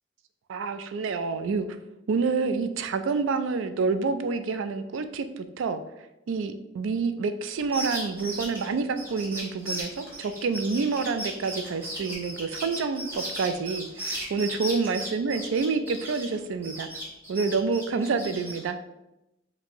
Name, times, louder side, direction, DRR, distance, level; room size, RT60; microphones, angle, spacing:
voice 1, 0.5-1.7 2.1-5.8 6.3-16.9 17.3-18.8, right 4 dB, 90° right, 9 dB, 0.3 m, -28 dB
sound 1, 7.6-16.4 16.6-18.6, equal, 10° right, 1.2 m, -36 dB
4.3 x 2.6 x 2.9 m, 0.92 s
head